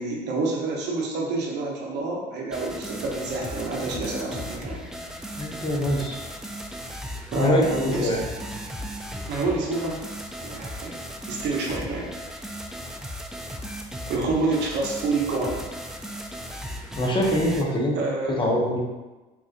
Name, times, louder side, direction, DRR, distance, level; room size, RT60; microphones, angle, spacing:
voice 1, 0.0-4.8 7.3-8.3 9.3-10.0 10.4-11.0 11.3-12.1 14.1-15.7 17.9-18.4, right 3 dB, 60° right, -3 dB, 0.8 m, -28 dB
sound 1, 2.5-17.6, equal, 5° right, 0.3 m, -36 dB
voice 2, 5.4-6.2 7.3-8.2 17.0-18.0 18.4-18.8, equal, 25° left, -1 dB, 0.9 m, -23 dB
3.7 x 3.0 x 2.4 m, 1.2 s
hypercardioid pair, 70°, 20 cm